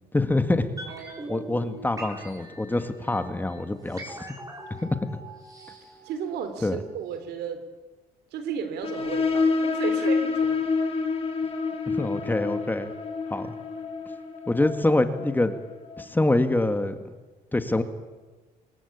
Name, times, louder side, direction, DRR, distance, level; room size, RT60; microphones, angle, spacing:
voice 1, 0.1-0.7 1.3-4.3 4.7-4.9 6.6-6.8 11.9-12.9 13.3-13.5 14.5-15.5 16.0-17.1 17.5-17.8, left 2 dB, 10° left, 9 dB, 2.0 m, -25 dB
sound 1, 0.8-6.8 7.1-7.2, right 1 dB, 20° right, 7.1 m, -42 dB
voice 2, 0.8-1.3 3.9-4.0 6.0-7.6 8.3-10.6, right 7 dB, 80° right, 9 dB, 3.7 m, -34 dB
sound 2, 8.8-16.1, left 4 dB, 35° left, 4.0 m, -28 dB
25.5 x 21.0 x 8.7 m, 1.2 s
cardioid pair, 110°, 17 cm